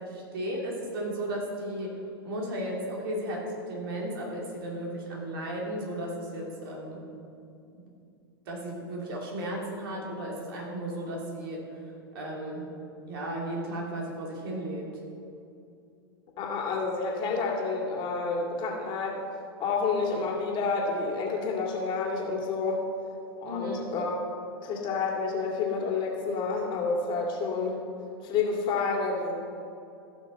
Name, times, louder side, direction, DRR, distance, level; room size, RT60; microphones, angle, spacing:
voice 1, 0.0-2.0 2.2-7.1 7.7-7.9 8.5-12.7 13.1-14.9 23.4-23.9, right 1 dB, 70° right, -2 dB, 2.7 m, -35 dB
voice 2, 16.4-19.2 19.6-22.8 23.4-24.2 24.6-27.8 28.2-29.3, left 4 dB, 40° left, -1 dB, 2.2 m, -29 dB
16.0 x 5.9 x 4.1 m, 2.6 s
hypercardioid pair, 105°, 13 cm